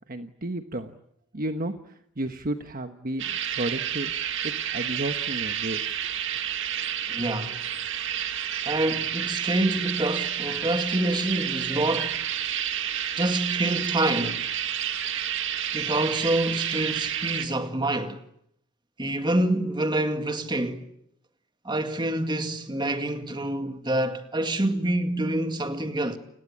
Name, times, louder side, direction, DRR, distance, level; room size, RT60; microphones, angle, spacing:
voice 1, 0.1-0.9 1.3-4.1 4.4-5.8, right 1 dB, 45° right, 1.2 m, -32 dB
sound 1, 3.2-17.5, right 9 dB, 60° right, 2.0 m, -30 dB
voice 2, 7.1-7.6 8.7-12.2 13.2-14.4 15.7-18.2 19.0-20.9 21.6-26.2, right 1 dB, 20° right, 2.1 m, -27 dB
30.0 x 21.5 x 8.7 m
head